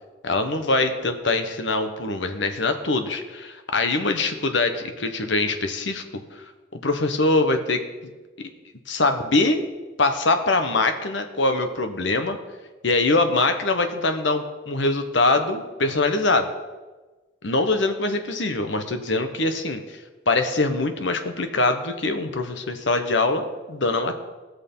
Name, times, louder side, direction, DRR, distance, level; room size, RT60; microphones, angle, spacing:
voice 1, 0.2-6.0 6.3-6.4 6.7-7.8 8.4-8.5 8.9-9.6 10.0-12.4 12.8-16.5 17.4-20.0 20.3-24.1, left 2 dB, 70° left, 7 dB, 1.2 m, -23 dB
19.0 x 6.5 x 5.5 m, 1.3 s
head